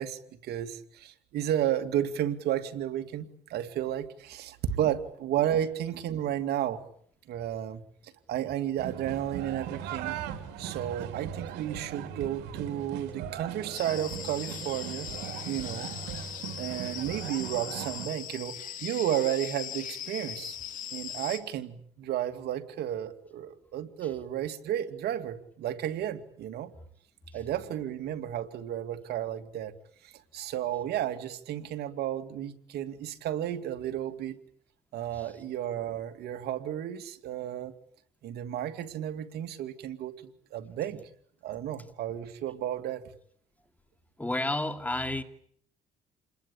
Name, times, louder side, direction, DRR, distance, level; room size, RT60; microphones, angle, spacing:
voice 1, 0.0-6.8 7.3-10.2 10.6-15.1 15.5-15.9 16.6-20.6 20.9-26.7 27.3-29.7 30.0-34.4 34.9-37.7 38.2-41.0 41.4-43.0, right 11 dB, 70° right, 2.6 m, -33 dB
sound 1, 8.8-18.1, right 9 dB, 90° right, 3.4 m, -39 dB
sound 2, 13.7-21.4, left 9 dB, 55° left, 4.0 m, -40 dB
voice 2, 44.2-45.2, left 1 dB, 10° left, 2.7 m, -31 dB
28.5 x 21.5 x 8.6 m
cardioid pair, 110°, 17 cm